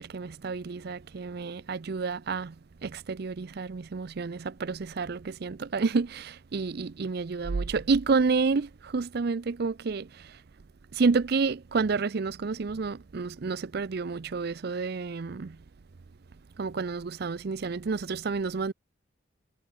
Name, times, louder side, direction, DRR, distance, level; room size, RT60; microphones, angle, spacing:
voice 1, 0.0-2.5 2.8-10.4 10.9-15.6 16.6-18.7, right 4 dB, 55° right, 0.5 m, -29 dB
head